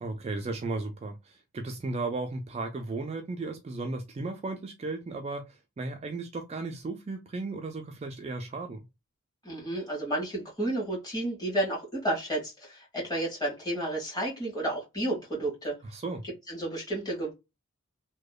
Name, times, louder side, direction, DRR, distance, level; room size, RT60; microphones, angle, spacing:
voice 1, 0.0-8.8 15.9-16.2, right 3 dB, 30° right, 0.3 m, -35 dB
voice 2, 9.4-15.8 16.5-17.3, right 1 dB, 20° left, 1.4 m, -31 dB
2.8 x 2.1 x 2.2 m
head